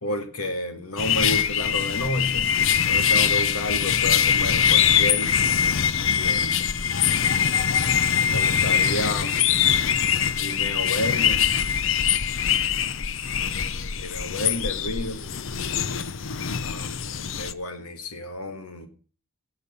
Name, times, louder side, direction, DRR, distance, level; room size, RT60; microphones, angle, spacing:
voice 1, 0.0-2.5 2.8-5.3 6.2-6.5 8.3-9.7 10.4-11.4 13.9-15.2 16.6-18.9, left 1 dB, 85° left, 7 dB, 2.0 m, -31 dB
sound 1, 1.0-17.5, left 8 dB, 60° left, 0.7 m, -23 dB
18.0 x 7.1 x 5.5 m, 0.38 s
head